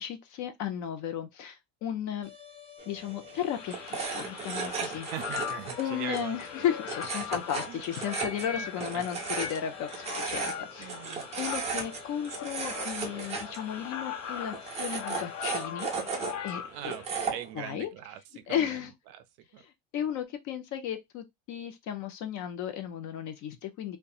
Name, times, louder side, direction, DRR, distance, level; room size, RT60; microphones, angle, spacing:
voice 1, 0.0-2.3 2.9-5.1 5.8-10.9 11.4-15.9 16.4-16.9 17.5-17.9 18.5-18.9 19.9-24.0, left 9 dB, 45° left, 0.5 m, -34 dB
sound 1, 2.2-15.7, left 6 dB, 15° left, 1.0 m, -52 dB
sound 2, 2.8-17.5, right 5 dB, 15° right, 0.5 m, -37 dB
sound 3, 3.5-17.1, left 7 dB, 70° left, 0.9 m, -40 dB
voice 2, 5.1-6.7 7.1-7.4 7.7-7.8 8.5-9.0 10.3-10.5 10.8-11.3 16.7-19.6, right 11 dB, 60° right, 0.6 m, -42 dB
2.8 x 2.2 x 2.3 m
cardioid pair, 140°, 43 cm